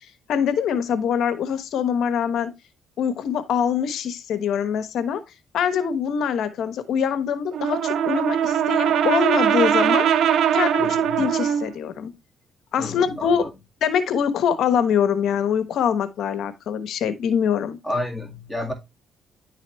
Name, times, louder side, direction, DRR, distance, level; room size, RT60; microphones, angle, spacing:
voice 1, 0.3-2.5 3.0-5.2 5.5-10.1 10.5-12.1 12.7-13.5 13.8-17.8, left 7 dB, 75° left, 1.0 m, -24 dB
Brass instrument, 7.5-11.7, right 9 dB, 75° right, 0.6 m, -21 dB
voice 2, 10.8-11.3 12.8-13.5 17.8-18.7, left 1 dB, ahead, 2.0 m, -31 dB
10.5 x 4.1 x 3.1 m
cardioid pair, 90°, 0 cm